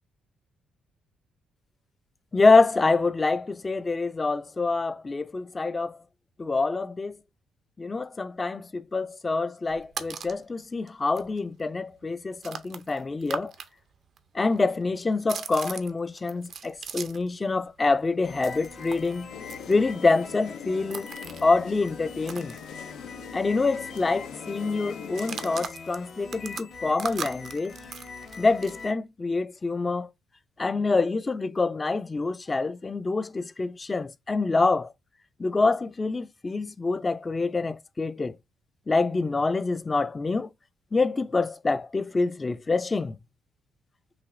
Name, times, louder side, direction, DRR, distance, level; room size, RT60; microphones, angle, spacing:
voice 1, 2.3-6.0 6.4-7.2 7.8-13.5 14.3-19.3 19.7-21.1 21.4-22.5 23.3-27.7 28.4-30.1 30.6-34.9 35.4-38.4 38.9-40.5 40.9-43.2, left 3 dB, 25° left, 0.4 m, -26 dB
sound 1, 9.7-10.4 10.9-11.0 11.2-13.7 13.9-17.4 17.6-23.3 23.5-23.7 23.9-24.3 25.0-28.8, right 6 dB, 60° right, 0.5 m, -40 dB
sound 2, 18.2-28.9, left 4 dB, 65° left, 1.3 m, -43 dB
sound 3, 19.3-25.7, left 8 dB, 85° left, 0.4 m, -43 dB
4.9 x 2.8 x 2.5 m
cardioid pair, 90°, 0 cm